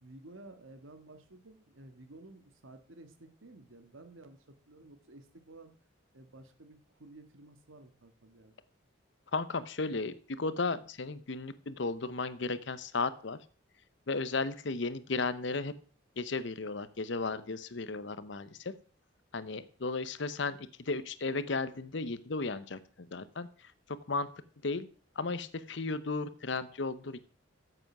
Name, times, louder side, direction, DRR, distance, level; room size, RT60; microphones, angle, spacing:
voice 1, 0.0-5.7 6.1-8.5, right 2 dB, 85° right, 8 dB, 1.6 m, -53 dB
voice 2, 9.3-13.4 14.1-15.7 16.2-18.7 19.3-24.3 24.6-24.9 25.2-27.2, left 3 dB, 65° left, 15 dB, 0.8 m, -35 dB
9.5 x 7.9 x 5.9 m, 0.43 s
head